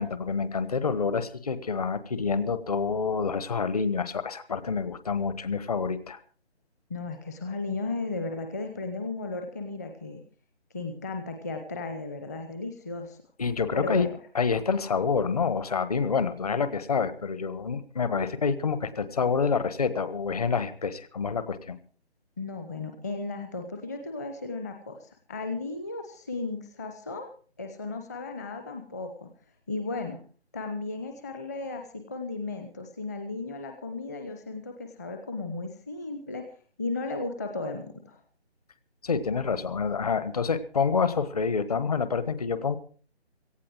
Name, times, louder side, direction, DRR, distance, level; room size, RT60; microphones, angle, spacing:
voice 1, 0.0-6.2 13.4-14.1 14.3-21.8 39.0-42.8, left 5 dB, 35° left, 13 dB, 1.3 m, -27 dB
voice 2, 6.9-10.2 10.7-13.2 13.7-14.1 22.4-27.3 27.6-29.3 29.7-30.2 30.5-36.4 36.8-38.2, left 3 dB, 15° left, 5 dB, 0.9 m, -35 dB
17.5 x 15.0 x 4.6 m, 0.42 s
figure-of-eight pair, 155°, 33 cm